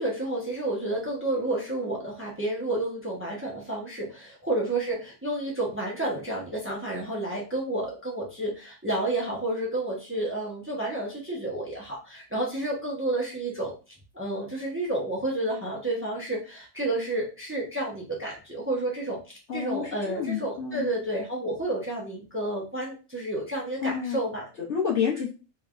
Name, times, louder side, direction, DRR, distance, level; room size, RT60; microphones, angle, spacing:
voice 1, 0.0-13.7 14.1-19.2 19.5-24.4, right 2 dB, 10° right, -3 dB, 0.7 m, -30 dB
voice 2, 19.5-20.9 23.8-24.2 24.6-25.3, left 7 dB, 55° left, -5 dB, 1.1 m, -29 dB
3.3 x 3.2 x 2.5 m, 0.32 s
omnidirectional pair, 1.6 m